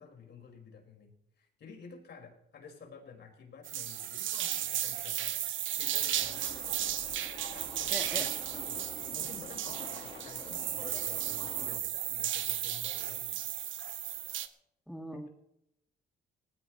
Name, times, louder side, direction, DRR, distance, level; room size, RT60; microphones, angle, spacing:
voice 1, 0.0-6.8 7.5-13.4, left 5 dB, 60° left, 1 dB, 5.3 m, -52 dB
sound 1, 3.6-14.5, right 11 dB, 75° right, 1.1 m, -34 dB
sound 2, 6.1-11.8, left 3 dB, 25° left, 1.8 m, -48 dB
voice 2, 7.9-8.3 14.9-15.3, equal, ahead, 3 dB, 2.0 m, -40 dB
20.0 x 16.0 x 3.2 m, 0.79 s
cardioid pair, 90°, 20 cm